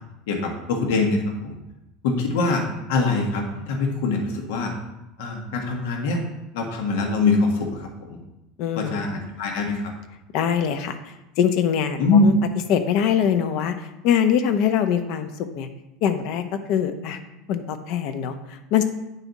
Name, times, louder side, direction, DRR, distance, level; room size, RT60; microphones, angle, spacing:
voice 1, 0.3-1.5 2.0-4.7 5.2-6.2 6.5-8.2 8.7-9.9 12.0-12.2, left 3 dB, 75° left, 2 dB, 1.5 m, -23 dB
voice 2, 8.6-9.3 10.3-12.3 12.7-15.7 16.0-17.2 17.5-18.8, left 8 dB, 45° left, 9 dB, 0.7 m, -23 dB
9.4 x 5.5 x 4.1 m, 0.94 s
supercardioid pair, 170°, 0 cm